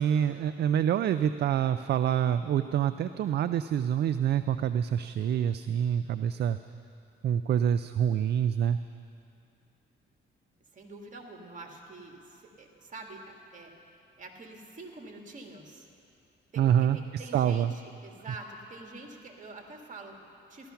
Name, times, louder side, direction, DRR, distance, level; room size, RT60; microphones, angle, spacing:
voice 1, 0.0-6.6 7.2-8.8 16.6-17.7, right 9 dB, 55° right, 11 dB, 0.4 m, -26 dB
voice 2, 10.7-13.7 14.2-15.9 16.5-20.7, right 2 dB, 40° right, 2 dB, 2.1 m, -46 dB
15.0 x 12.5 x 5.8 m, 2.6 s
cardioid pair, 90°, 20 cm